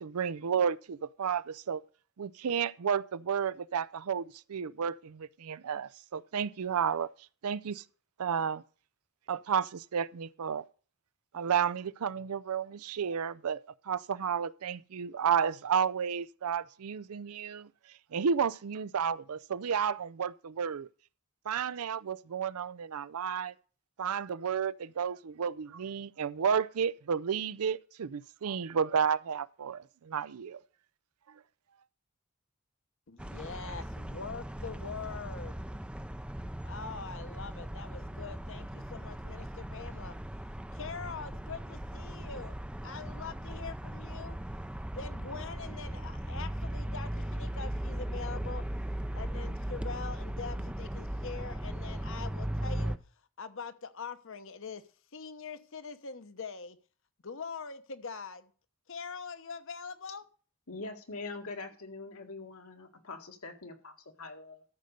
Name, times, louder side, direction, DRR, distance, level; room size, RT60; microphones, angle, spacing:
voice 1, 0.0-1.8 2.2-7.1 7.4-7.8 8.2-8.6 9.3-10.6 11.3-17.7 18.1-20.9 21.5-23.5 24.0-30.6, right 7 dB, 80° right, 0.5 m, -32 dB
voice 2, 33.1-35.7 36.6-40.1 40.7-42.6 42.8-44.4 44.9-48.6 49.1-52.9 53.4-54.8 55.1-56.8 57.2-58.5 58.9-60.2, left 5 dB, 60° left, 1.0 m, -43 dB
sound 1, 33.2-53.0, right 1 dB, 5° right, 0.5 m, -38 dB
voice 3, 60.7-64.6, left 3 dB, 75° left, 1.9 m, -43 dB
13.5 x 5.2 x 6.7 m
head